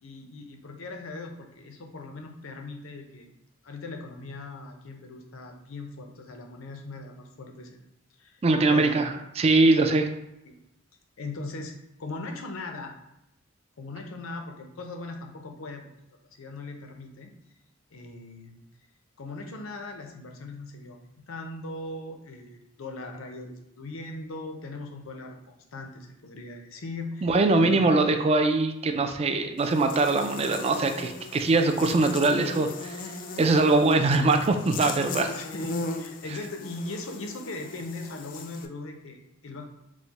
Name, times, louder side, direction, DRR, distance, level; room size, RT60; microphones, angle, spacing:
voice 1, 0.0-3.3 3.6-7.8 8.2-9.2 10.4-10.6 11.2-13.0 13.8-15.9 16.4-17.3 17.9-18.6 19.2-28.0 35.3-39.6, left 2 dB, 85° left, 3 dB, 0.6 m, -39 dB
voice 2, 8.4-10.1 27.2-33.0 33.4-35.3, right 3 dB, 30° right, 6 dB, 0.3 m, -22 dB
Buzz, 29.6-38.7, left 3 dB, 45° left, 0.4 m, -38 dB
4.8 x 2.1 x 4.0 m, 0.89 s
head